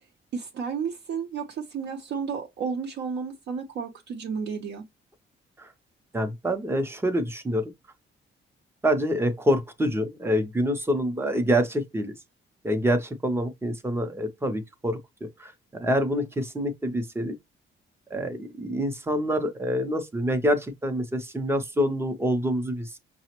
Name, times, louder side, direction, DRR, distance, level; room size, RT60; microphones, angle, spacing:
voice 1, 0.3-4.8, right 6 dB, 60° right, 0.6 m, -32 dB
voice 2, 6.1-7.7 8.8-12.1 12.6-15.0 15.4-15.5 15.8-17.3 18.1-23.0, equal, 10° right, 0.5 m, -26 dB
5.7 x 2.0 x 2.9 m
cardioid pair, 165°, 21 cm